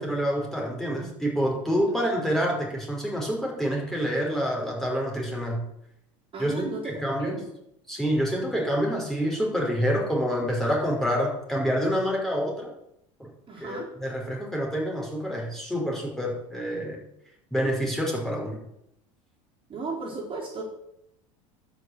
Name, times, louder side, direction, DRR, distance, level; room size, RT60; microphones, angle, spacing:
voice 1, 0.0-5.6 6.4-7.4 7.9-12.7 13.2-13.3 13.6-17.0 17.5-18.6, equal, ahead, -2 dB, 5.5 m, -27 dB
voice 2, 6.3-7.4 13.5-13.9 19.7-20.6, right 4 dB, 30° right, -3 dB, 4.2 m, -35 dB
12.0 x 6.1 x 8.4 m, 0.78 s
hypercardioid pair, 90°, 17 cm